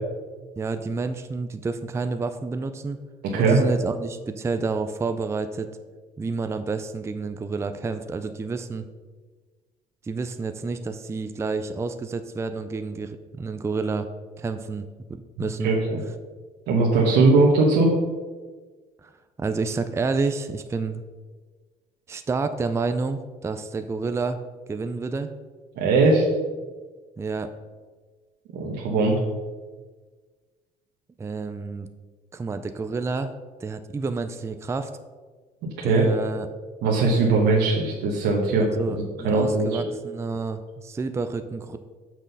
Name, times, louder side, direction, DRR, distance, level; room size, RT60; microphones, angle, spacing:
voice 1, 0.6-3.0 3.3-5.7 6.2-8.9 10.0-14.1 14.4-15.7 19.0-19.1 19.4-21.0 22.1-24.4 24.7-25.3 27.2-27.5 31.2-31.9 32.3-33.3 33.6-34.9 35.8-36.5 38.6-41.8, right 4 dB, 15° right, 9 dB, 0.4 m, -29 dB
voice 2, 3.2-3.6 15.6-16.0 16.7-17.9 25.8-26.2 28.5-29.1 35.6-36.1 36.8-38.7 39.2-39.7, right 3 dB, 80° right, -2 dB, 1.3 m, -20 dB
6.2 x 6.1 x 5.3 m, 1.4 s
cardioid pair, 110°, 17 cm